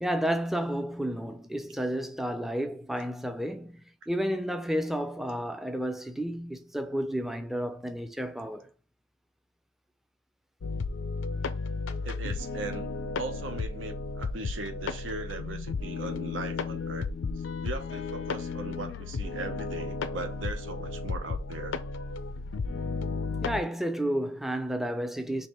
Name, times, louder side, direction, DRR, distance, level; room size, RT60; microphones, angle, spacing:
voice 1, 0.0-8.7 23.4-25.5, equal, ahead, 0.4 m, -31 dB
sound 1, 10.6-23.6, left 4 dB, 85° left, 0.4 m, -34 dB
voice 2, 12.0-12.9 13.2-17.1 17.6-21.8, right 3 dB, 85° right, 0.7 m, -39 dB
3.3 x 2.9 x 4.2 m
head